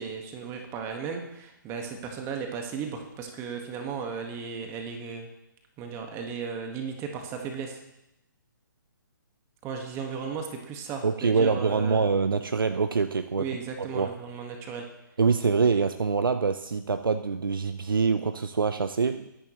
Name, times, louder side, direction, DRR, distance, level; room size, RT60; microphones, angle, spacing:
voice 1, 0.0-5.3 5.8-7.8 9.6-12.0 13.4-14.8, right 6 dB, 20° right, 3 dB, 1.8 m, -35 dB
voice 2, 11.0-13.4 13.9-14.1 15.2-19.2, right 5 dB, 85° right, 10 dB, 0.7 m, -25 dB
23.0 x 11.0 x 3.2 m, 0.87 s
hypercardioid pair, 140°, 11 cm